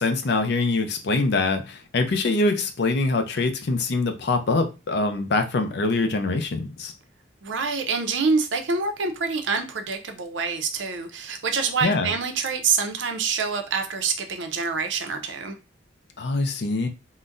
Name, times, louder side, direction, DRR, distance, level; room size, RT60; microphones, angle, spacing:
voice 1, 0.0-6.9 11.8-12.1 16.2-16.9, left 3 dB, 60° left, 6 dB, 0.5 m, -24 dB
voice 2, 7.4-15.6, right 5 dB, 75° right, 6 dB, 0.6 m, -26 dB
3.8 x 2.1 x 2.5 m, 0.29 s
head